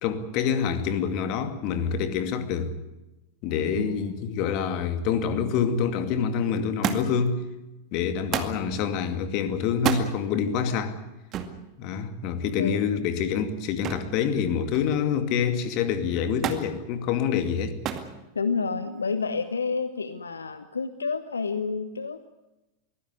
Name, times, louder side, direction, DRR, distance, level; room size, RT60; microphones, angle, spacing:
voice 1, 0.0-2.7 3.4-7.4 7.9-11.0 11.8-17.8, left 7 dB, 40° left, 2.3 m, -26 dB
voice 2, 3.8-4.2 12.6-12.8 18.3-22.3, left 4 dB, 75° left, 0.9 m, -29 dB
Thump thud, 6.8-7.3 8.3-8.6 9.7-10.1 11.3-11.6 13.8-14.2 14.5-15.1 16.4-16.7 17.8-18.1 19.1-19.5 20.5-20.6, right 9 dB, 35° right, 2.2 m, -29 dB
23.0 x 16.5 x 9.8 m
figure-of-eight pair, 90°, 0 cm